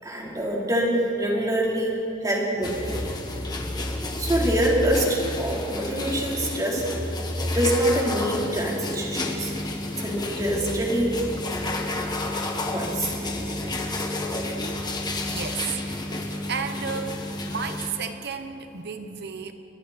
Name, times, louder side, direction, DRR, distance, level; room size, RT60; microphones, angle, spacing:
voice 1, 0.0-2.0 2.2-3.0 4.2-7.0 7.5-9.5 10.0-11.1 12.7-13.1, right 1 dB, 20° right, -3 dB, 4.0 m, -25 dB
sound 1, 2.6-17.9, left 1 dB, 20° left, 1.8 m, -30 dB
voice 2, 15.3-15.8 16.2-17.2 17.4-19.5, right 6 dB, 60° right, 7 dB, 1.2 m, -32 dB
30.0 x 23.0 x 4.4 m, 3.0 s
head